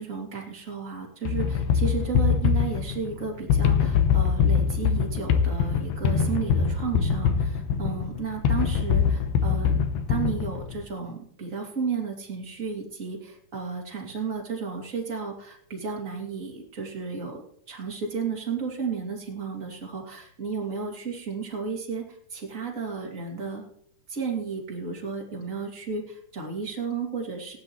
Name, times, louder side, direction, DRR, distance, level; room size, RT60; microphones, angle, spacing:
voice 1, 0.0-9.7 10.1-17.4 17.7-23.6 24.1-27.6, right 5 dB, 25° right, -1 dB, 2.4 m, -33 dB
sound 1, 1.3-10.8, left 6 dB, 80° left, 2.7 m, -23 dB
18.5 x 11.0 x 3.1 m, 0.66 s
omnidirectional pair, 4.4 m